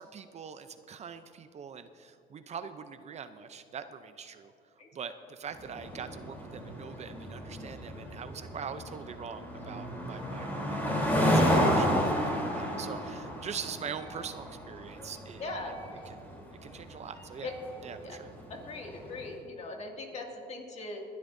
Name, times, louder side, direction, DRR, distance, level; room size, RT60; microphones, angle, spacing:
voice 1, 0.0-4.5 4.9-15.5 16.0-17.5 17.8-18.3, right 7 dB, 40° right, 10 dB, 0.6 m, -43 dB
sound 1, 5.6-19.1, equal, 10° left, 3.4 m, -31 dB
voice 2, 15.4-15.7 17.4-17.5 18.0-18.2 18.5-21.0, left 3 dB, 40° left, 1 dB, 2.3 m, -40 dB
20.5 x 11.5 x 2.7 m, 2.7 s
cardioid pair, 110°, 17 cm